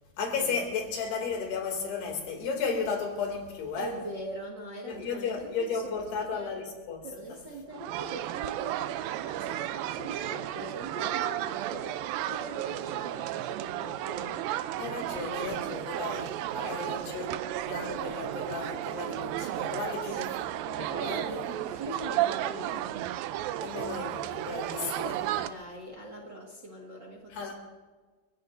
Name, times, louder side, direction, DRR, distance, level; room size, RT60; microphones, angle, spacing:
voice 1, 0.2-3.9 4.9-7.1 14.8-20.3 20.7-21.2 23.6-25.3 27.3-27.5, left 5 dB, 90° left, 4.6 m, -34 dB
voice 2, 3.7-6.6 7.0-14.4 16.6-17.1 19.8-20.2 21.0-23.0 25.4-27.5, right 1 dB, 45° right, 1.5 m, -42 dB
sound 1, 7.7-25.5, right 13 dB, 80° right, 2.2 m, -33 dB
29.5 x 16.0 x 2.6 m
omnidirectional pair, 4.4 m